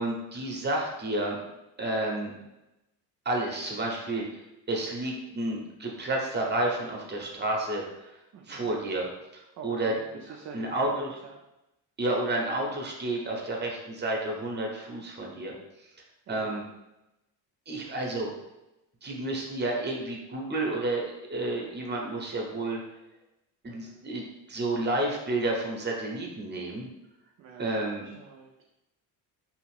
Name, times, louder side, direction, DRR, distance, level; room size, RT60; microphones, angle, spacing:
voice 1, 0.0-1.4 1.8-2.3 3.2-4.4 4.7-7.8 8.5-9.9 10.5-11.2 12.0-15.5 16.3-16.6 17.7-18.3 19.0-22.8 23.6-26.9 27.6-28.1, right 2 dB, 25° right, 0 dB, 0.9 m, -30 dB
voice 2, 8.3-8.7 9.6-11.4 16.3-16.6 23.7-24.1 27.4-28.5, right 5 dB, 40° right, 1 dB, 0.4 m, -45 dB
2.8 x 2.4 x 3.2 m, 0.94 s
supercardioid pair, 75°, 45 cm